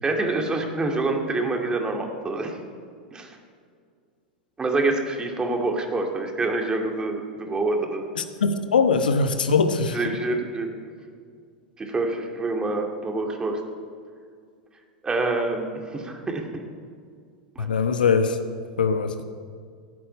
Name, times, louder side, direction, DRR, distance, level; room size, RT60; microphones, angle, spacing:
voice 1, 0.0-2.6 3.1-3.4 4.6-8.1 9.9-10.7 11.8-13.6 15.0-16.6 17.6-17.7, right 2 dB, 15° right, 2 dB, 2.3 m, -26 dB
voice 2, 8.2-10.0 17.6-18.4 18.8-19.2, left 5 dB, 75° left, 8 dB, 1.0 m, -22 dB
16.5 x 8.5 x 8.6 m, 2.1 s
figure-of-eight pair, 90°, 5 cm